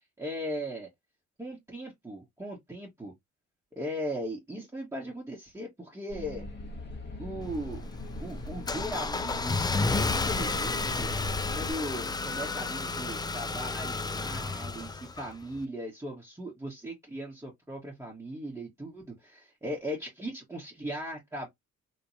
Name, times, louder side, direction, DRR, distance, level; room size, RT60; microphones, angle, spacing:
voice 1, 0.2-0.9 1.4-3.1 3.7-6.4 7.2-7.8 8.2-9.7 10.0-11.1 11.5-21.5, equal, 10° right, 1.5 m, -38 dB
sound 1, 6.1-11.7, left 1 dB, 35° left, 1.6 m, -39 dB
Car / Engine starting, 7.4-15.6, left 3 dB, 15° left, 0.4 m, -32 dB
3.3 x 3.2 x 2.7 m
cardioid pair, 90°, 30 cm